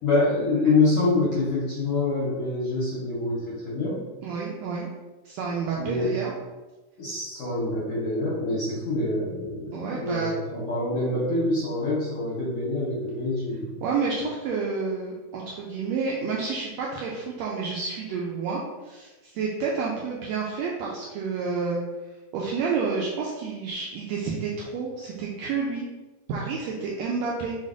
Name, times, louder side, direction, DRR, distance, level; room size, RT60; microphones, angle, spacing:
voice 1, 0.0-4.0 5.8-6.1 7.0-13.8, left 2 dB, 70° left, -7 dB, 1.3 m, -26 dB
voice 2, 4.2-4.9 5.2-6.3 9.7-10.3 13.8-21.8 22.3-25.9 26.3-27.6, right 4 dB, 85° right, -3 dB, 1.6 m, -29 dB
4.5 x 4.1 x 2.5 m, 1.2 s
omnidirectional pair, 3.6 m